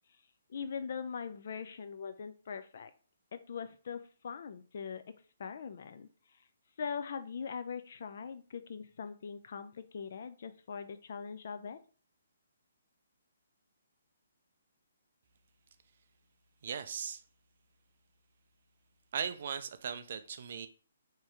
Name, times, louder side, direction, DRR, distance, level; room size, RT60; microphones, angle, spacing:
voice 1, 0.5-2.9 3.3-6.1 6.8-11.8, left 6 dB, 50° left, 10 dB, 0.3 m, -41 dB
voice 2, 16.6-17.2 19.1-20.7, right 7 dB, 45° right, 10 dB, 0.4 m, -38 dB
3.0 x 2.8 x 3.5 m, 0.39 s
figure-of-eight pair, 130°, 0 cm